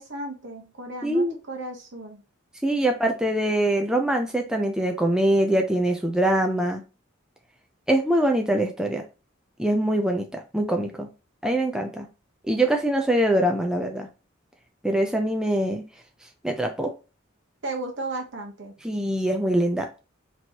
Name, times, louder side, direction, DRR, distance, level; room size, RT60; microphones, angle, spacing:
voice 1, 0.0-2.2 17.6-18.7, right 2 dB, 65° right, 2 dB, 1.1 m, -34 dB
voice 2, 1.0-1.3 2.6-6.8 7.9-9.0 9.6-11.1 11.4-12.1 12.4-14.1 14.8-15.8 16.4-16.9 18.8-19.9, right 1 dB, 5° right, 3 dB, 0.4 m, -23 dB
4.3 x 3.0 x 2.9 m, 0.31 s
head